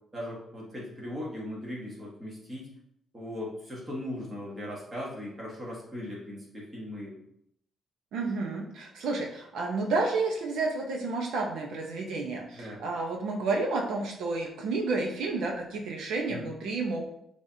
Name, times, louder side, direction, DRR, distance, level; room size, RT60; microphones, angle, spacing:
voice 1, 0.1-2.7 3.1-7.2 12.5-12.8 16.3-16.5, left 1 dB, 15° right, -5 dB, 1.7 m, -38 dB
voice 2, 8.1-17.0, right 3 dB, 85° right, 0 dB, 1.1 m, -30 dB
9.9 x 3.4 x 2.9 m, 0.75 s
cardioid pair, 180°, 0 cm